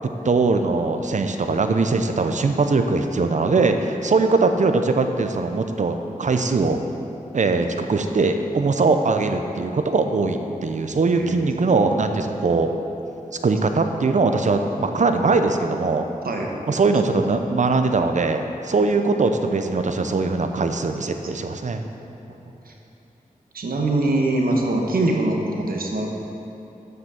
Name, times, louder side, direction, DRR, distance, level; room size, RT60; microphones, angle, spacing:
voice 1, 0.2-6.8 7.3-12.7 13.4-16.0 16.7-21.8, right 3 dB, 55° right, 6 dB, 0.6 m, -21 dB
voice 2, 11.1-11.7 16.2-16.6 22.7-22.8 23.5-26.1, right 2 dB, 90° right, 1 dB, 1.1 m, -23 dB
8.1 x 6.0 x 7.0 m, 2.8 s
wide cardioid pair, 90°, 15 cm